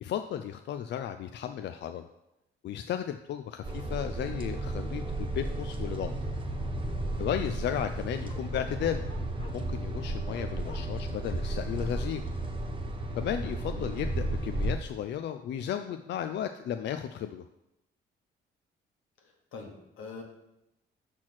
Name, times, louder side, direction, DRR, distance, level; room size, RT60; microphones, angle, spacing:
voice 1, 0.0-2.0 2.6-6.1 7.2-9.0 9.5-12.2 13.2-17.4, left 9 dB, 60° left, 8 dB, 0.4 m, -34 dB
sound 1, 3.6-14.7, right 1 dB, 25° right, 1.1 m, -33 dB
Bark, 8.3-9.7 10.3-10.8, left 1 dB, 25° left, 1.1 m, -48 dB
voice 2, 19.2-20.2, left 4 dB, 90° left, 1 dB, 1.5 m, -44 dB
6.0 x 4.5 x 6.0 m, 0.89 s
cardioid pair, 90°, 20 cm